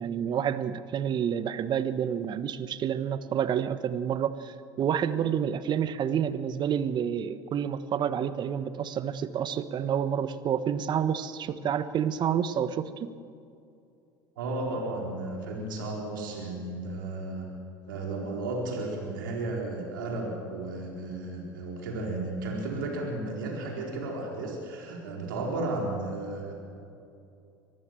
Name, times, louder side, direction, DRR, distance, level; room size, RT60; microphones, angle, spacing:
voice 1, 0.0-13.1, right 8 dB, 45° right, 13 dB, 1.2 m, -29 dB
voice 2, 14.4-17.5 17.9-26.5, right 2 dB, 85° right, -1 dB, 4.2 m, -34 dB
24.0 x 15.0 x 7.7 m, 2.6 s
hypercardioid pair, 80°, 11 cm